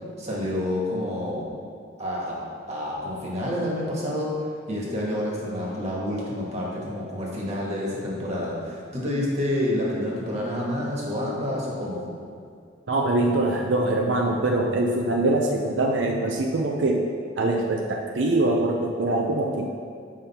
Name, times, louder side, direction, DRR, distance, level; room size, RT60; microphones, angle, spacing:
voice 1, 0.2-1.5 2.0-2.4 2.7-4.3 4.7-12.1, left 1 dB, 35° right, -4 dB, 1.6 m, -28 dB
voice 2, 12.9-17.0 17.4-19.7, right 2 dB, 85° right, 1 dB, 0.6 m, -23 dB
7.5 x 5.3 x 4.3 m, 2.3 s
head